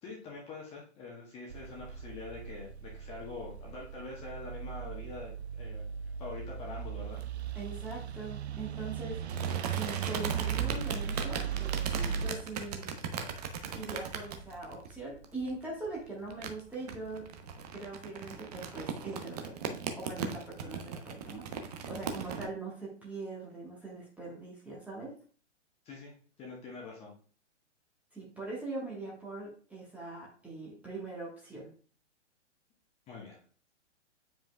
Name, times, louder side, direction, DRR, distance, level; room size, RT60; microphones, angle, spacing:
voice 1, 0.0-5.8 6.2-7.2 25.8-26.1 26.4-27.1 33.1-33.4, left 3 dB, 15° left, -2 dB, 1.3 m, -44 dB
sound 1, 1.5-12.3, right 8 dB, 65° right, 0.5 m, -37 dB
sound 2, 7.1-7.9 9.3-22.5, right 6 dB, 35° right, 0.7 m, -39 dB
voice 2, 7.5-12.9 13.7-17.3 17.7-21.5 21.9-25.1 28.1-31.7, right 3 dB, 5° right, -5 dB, 1.3 m, -42 dB
8.9 x 5.1 x 2.3 m, 0.41 s
figure-of-eight pair, 120°, 36 cm